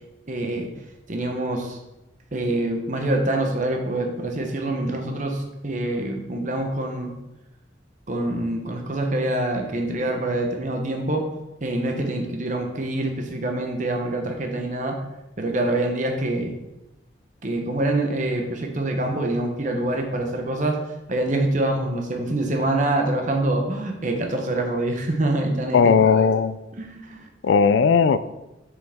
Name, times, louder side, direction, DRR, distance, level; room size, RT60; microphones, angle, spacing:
voice 1, 0.3-0.7 1.1-1.8 2.3-7.1 8.1-11.2 11.6-15.0 15.4-16.5 17.4-20.8 21.1-26.3 26.7-27.3, right 1 dB, 40° right, 3 dB, 0.9 m, -25 dB
voice 2, 25.7-26.6 27.4-28.2, left 5 dB, 65° left, 14 dB, 0.3 m, -17 dB
6.3 x 5.1 x 3.5 m, 0.97 s
head